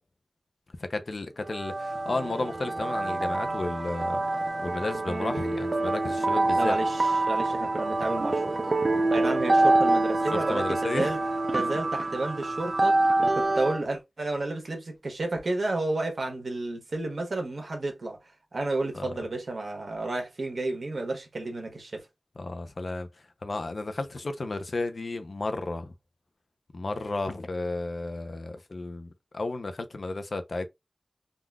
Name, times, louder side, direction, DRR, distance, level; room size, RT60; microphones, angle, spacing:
voice 1, 0.8-4.2 4.6-6.7 10.3-11.1 18.9-19.1 22.4-23.1 23.4-25.9 26.7-30.7, left 2 dB, 65° left, 0.6 m, -33 dB
sound 1, 1.5-13.8, right 2 dB, 50° right, 0.4 m, -26 dB
voice 2, 6.5-8.6 9.1-11.2 11.5-18.2 18.5-22.1, right 2 dB, 70° right, 1.0 m, -31 dB
3.7 x 2.4 x 2.3 m
wide cardioid pair, 65°, 0 cm